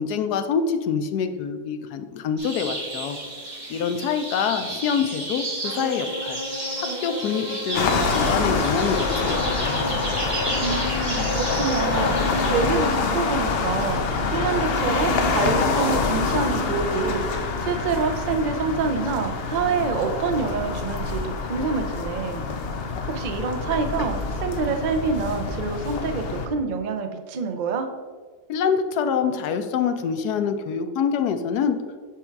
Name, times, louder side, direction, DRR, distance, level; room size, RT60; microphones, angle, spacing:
voice 1, 0.0-3.2 3.7-6.4 6.8-9.7 28.5-31.8, left 6 dB, 85° left, 8 dB, 1.2 m, -25 dB
sound 1, 2.4-12.6, right 1 dB, 30° right, 1.7 m, -30 dB
sound 2, 7.7-26.5, left 4 dB, 65° left, 0.6 m, -26 dB
voice 2, 10.6-22.4 23.1-27.9, right 4 dB, 90° right, 6 dB, 0.4 m, -27 dB
7.7 x 3.5 x 4.5 m, 1.5 s
omnidirectional pair, 1.6 m